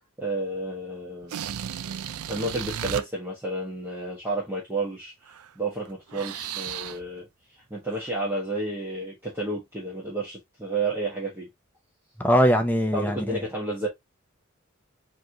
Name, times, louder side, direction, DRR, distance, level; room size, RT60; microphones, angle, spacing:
voice 1, 0.2-1.4 2.3-7.3 7.5-11.5 12.9-13.9, right 2 dB, 10° right, 1.3 m, -31 dB
sound 1, 1.2-3.0 5.3-5.5 5.9-7.1 7.9-8.1, right 9 dB, 80° right, 0.4 m, -34 dB
voice 2, 12.2-13.5, equal, 10° left, 0.7 m, -22 dB
4.5 x 3.1 x 2.8 m
head